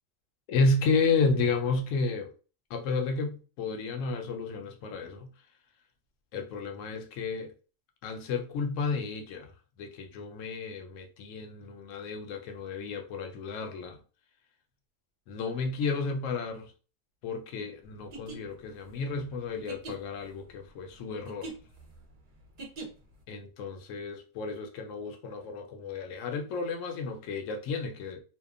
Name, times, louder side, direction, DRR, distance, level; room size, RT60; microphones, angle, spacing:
voice 1, 0.5-2.3 2.7-5.3 6.3-7.5 8.0-9.5 9.8-14.0 15.3-16.7 17.2-21.5 23.3-28.2, left 4 dB, 75° left, 0.9 m, -32 dB
sound 1, 18.0-23.2, right 3 dB, 50° right, 0.7 m, -44 dB
2.7 x 2.2 x 2.4 m
omnidirectional pair, 1.4 m